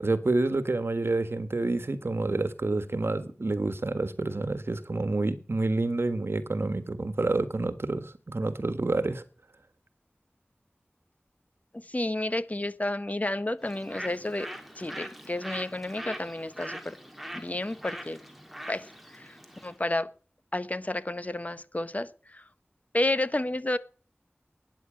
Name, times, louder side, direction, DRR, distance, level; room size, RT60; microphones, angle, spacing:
voice 1, 0.0-9.2, right 2 dB, 75° right, 1.5 m, -28 dB
voice 2, 11.7-14.5 14.7-17.0 17.3-18.2 18.7-20.1 20.5-22.4 22.9-23.8, left 1 dB, 40° left, 1.1 m, -31 dB
Bird, 13.6-19.8, equal, ahead, 2.8 m, -42 dB
13.0 x 9.7 x 8.6 m
wide cardioid pair, 45°, 4 cm